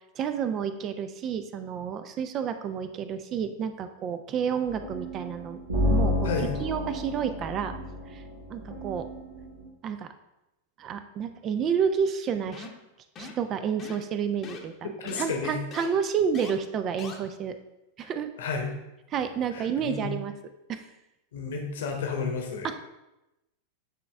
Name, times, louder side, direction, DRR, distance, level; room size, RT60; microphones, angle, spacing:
voice 1, 0.2-5.6 5.9-6.3 6.6-7.7 8.1-8.2 8.5-9.1 9.8-10.1 10.8-12.7 13.2-14.9 15.2-17.5 18.0-18.3 19.1-20.3 20.7-20.8 22.6-22.8, right 7 dB, 30° right, 10 dB, 0.4 m, -30 dB
sound 1, 4.7-9.6, left 1 dB, 80° right, 1.9 m, -30 dB
voice 2, 6.2-6.6 14.8-15.6 18.0-18.1 18.4-18.7 19.5-20.1 21.3-22.7, left 5 dB, 60° left, 3 dB, 1.0 m, -32 dB
sound 2, 12.5-12.8 13.2-13.4 13.8-14.1 14.4-14.6 15.1-15.2 15.7-15.9 16.3-16.5 17.0-17.1, left 5 dB, 30° left, 0.9 m, -41 dB
9.2 x 3.1 x 3.3 m, 0.94 s
figure-of-eight pair, 90°, 0 cm